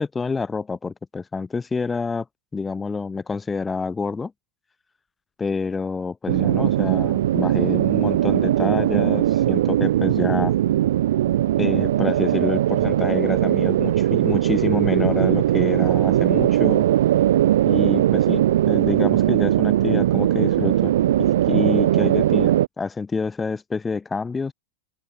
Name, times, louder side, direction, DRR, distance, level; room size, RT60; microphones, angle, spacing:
voice 1, 0.0-2.3 2.5-4.3 5.4-10.5 11.6-16.9 17.7-20.9 21.2-24.5, left 4 dB, 15° left, 4.0 m, -27 dB
sound 1, 6.3-22.7, right 12 dB, 60° right, 3.4 m, -19 dB
open air
figure-of-eight pair, 90°, 0 cm